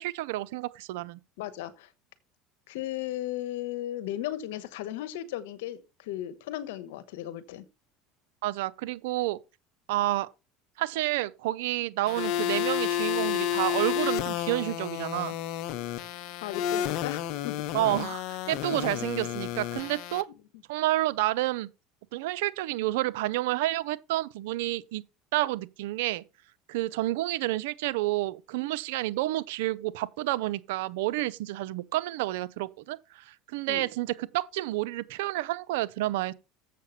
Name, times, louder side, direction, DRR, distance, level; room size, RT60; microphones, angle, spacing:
voice 1, 0.0-1.2 8.4-9.4 9.9-10.3 10.8-15.3 17.7-20.3 20.7-21.7 22.1-25.0 25.3-26.2 26.7-36.3, right 16 dB, 80° right, 0.6 m, -29 dB
voice 2, 1.4-1.9 2.7-7.6 16.4-17.7 18.7-19.1 33.7-33.9, left 13 dB, 85° left, 1.3 m, -36 dB
sound 1, 12.1-20.2, left 11 dB, 65° left, 0.8 m, -31 dB
7.6 x 6.6 x 5.7 m
supercardioid pair, 105°, 0 cm